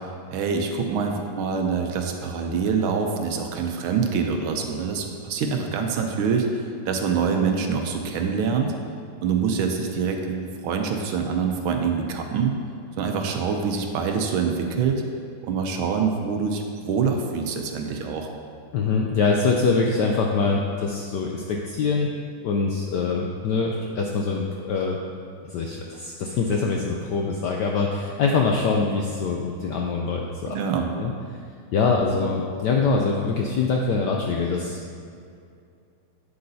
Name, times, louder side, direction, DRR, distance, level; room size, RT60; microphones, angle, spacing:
voice 1, 0.3-8.7 9.2-12.5 13.0-15.0 15.4-18.3 30.5-30.9, right 5 dB, 75° right, 3 dB, 1.4 m, -25 dB
voice 2, 18.7-22.1 22.4-25.0 25.4-30.6 31.0-31.1 31.7-35.0, left 4 dB, 75° left, 0 dB, 0.9 m, -24 dB
8.6 x 7.9 x 2.7 m, 2.4 s
omnidirectional pair, 2.4 m